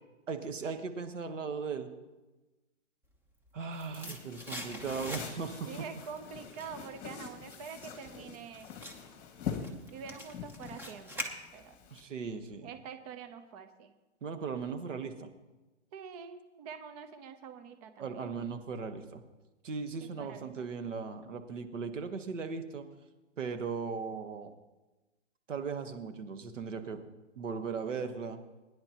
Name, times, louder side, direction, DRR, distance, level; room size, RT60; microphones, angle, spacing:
voice 1, 0.3-1.9 3.5-5.7 11.9-12.7 14.2-15.3 18.0-19.2 19.6-22.9 23.4-24.5 25.5-27.0 27.3-28.4, right 5 dB, 80° right, 7 dB, 1.5 m, -38 dB
sound 1, 3.2-5.6 6.0-11.9 12.2-12.3, equal, 5° right, 1.0 m, -44 dB
sound 2, 4.0-12.0, left 7 dB, 30° left, 2.1 m, -44 dB
voice 2, 5.7-8.7 9.9-11.8 12.6-13.9 15.9-18.4 20.0-20.7, right 6 dB, 30° right, 10 dB, 0.8 m, -46 dB
21.5 x 10.0 x 3.0 m, 1.1 s
hypercardioid pair, 140°, 37 cm